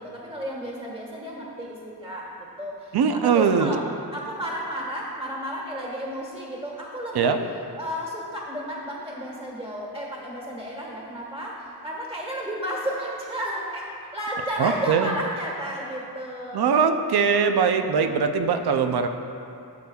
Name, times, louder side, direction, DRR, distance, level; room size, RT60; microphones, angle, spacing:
voice 1, 0.0-2.3 2.6-3.8 4.1-7.4 7.8-13.8 14.1-16.8, equal, 15° right, -3 dB, 1.4 m, -32 dB
voice 2, 2.9-3.8 7.1-7.4 14.6-15.1 16.5-19.1, right 6 dB, 70° right, 7 dB, 0.6 m, -21 dB
13.0 x 6.7 x 2.3 m, 2.6 s
wide cardioid pair, 135°, 40 cm